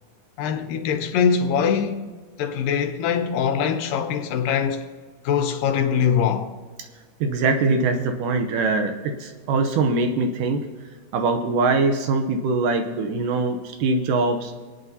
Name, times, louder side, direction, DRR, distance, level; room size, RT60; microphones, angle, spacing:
voice 1, 0.4-2.1 2.4-4.9 5.2-6.5, left 7 dB, 80° left, 2.4 m, -22 dB
voice 2, 7.2-10.6 11.1-14.5, right 3 dB, 75° right, 2.2 m, -22 dB
26.0 x 9.2 x 2.8 m
omnidirectional pair, 4.1 m